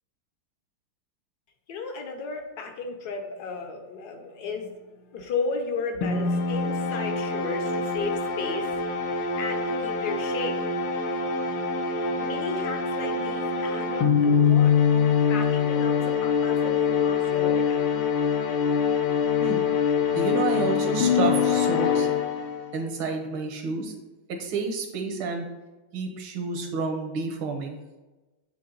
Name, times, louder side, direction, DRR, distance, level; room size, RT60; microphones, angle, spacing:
voice 1, 1.7-8.8 9.4-10.6 12.2-14.7 15.3-17.8, left 4 dB, 60° left, 4 dB, 1.1 m, -34 dB
sound 1, 6.0-22.8, left 6 dB, 85° left, 1.6 m, -24 dB
voice 2, 20.2-22.1 22.7-23.9 24.4-25.5 25.9-27.8, right 4 dB, 75° right, 3 dB, 1.8 m, -29 dB
8.6 x 3.5 x 3.9 m, 1.1 s
omnidirectional pair, 2.3 m